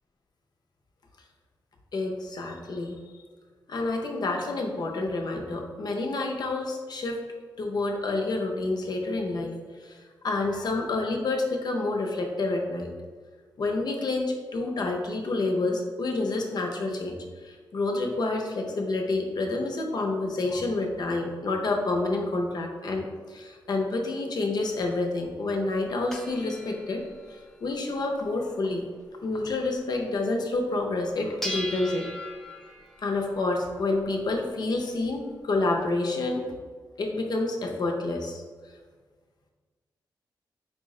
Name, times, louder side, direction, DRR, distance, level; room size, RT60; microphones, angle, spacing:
voice 1, 1.9-3.0 3.7-7.2 7.6-9.5 9.8-12.9 13.6-17.2 17.4-28.8 29.2-32.1 33.0-36.4 37.0-38.4, left 2 dB, 55° left, 2 dB, 0.6 m, -28 dB
sound 1, 24.6-30.1 30.5-30.6 30.8-35.7, left 1 dB, 5° left, 0.5 m, -42 dB
4.9 x 2.0 x 3.6 m, 1.5 s
cardioid pair, 80°, 8 cm